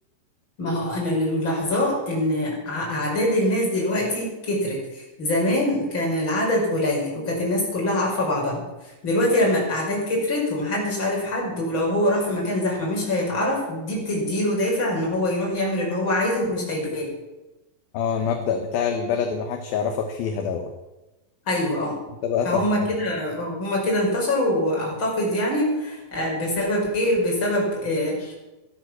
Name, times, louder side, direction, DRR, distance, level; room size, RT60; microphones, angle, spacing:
voice 1, 0.6-8.6 9.0-17.1 21.5-22.0 22.4-28.3, left 1 dB, 25° left, -3 dB, 6.2 m, -24 dB
voice 2, 17.9-20.7 22.2-22.9, left 6 dB, 70° left, 5 dB, 2.6 m, -25 dB
16.0 x 12.5 x 6.2 m, 1.0 s
omnidirectional pair, 5.1 m